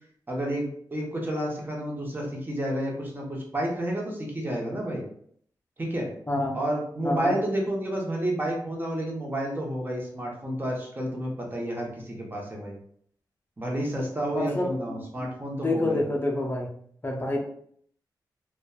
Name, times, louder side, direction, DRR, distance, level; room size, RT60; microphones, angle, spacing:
voice 1, 0.3-5.0 5.8-6.1 6.5-12.7 13.6-16.0, right 1 dB, 25° right, -1 dB, 0.8 m, -30 dB
voice 2, 6.3-6.6 7.0-7.4 14.3-15.3 15.6-16.7 17.0-17.4, left 2 dB, 25° left, -1 dB, 0.5 m, -27 dB
2.6 x 2.2 x 2.3 m, 0.62 s
cardioid pair, 65°, 8 cm